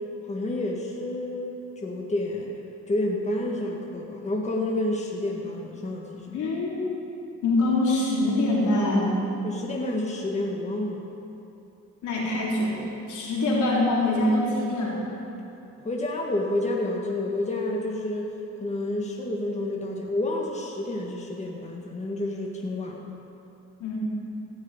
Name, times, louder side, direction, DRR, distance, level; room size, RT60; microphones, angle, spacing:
voice 1, 0.3-2.5 2.9-6.5 9.4-11.0 15.8-18.3 18.6-23.1, left 1 dB, 20° left, -1 dB, 1.6 m, -29 dB
voice 2, 6.3-6.9 7.4-9.1 12.0-12.7 13.1-15.0 23.8-24.0, left 2 dB, 75° left, -5 dB, 3.9 m, -24 dB
15.5 x 6.4 x 8.7 m, 2.8 s
cardioid pair, 90°, 30 cm